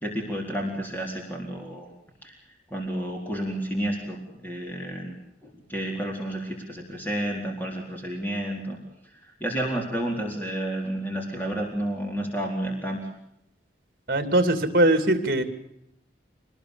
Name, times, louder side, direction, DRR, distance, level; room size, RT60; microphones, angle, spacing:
voice 1, 0.0-1.9 2.2-2.4 2.7-5.2 5.4-8.8 9.1-13.0, right 1 dB, 10° left, 1 dB, 4.2 m, -31 dB
voice 2, 14.1-15.4, right 1 dB, 50° right, 10 dB, 2.8 m, -21 dB
25.5 x 20.0 x 6.9 m, 0.79 s
head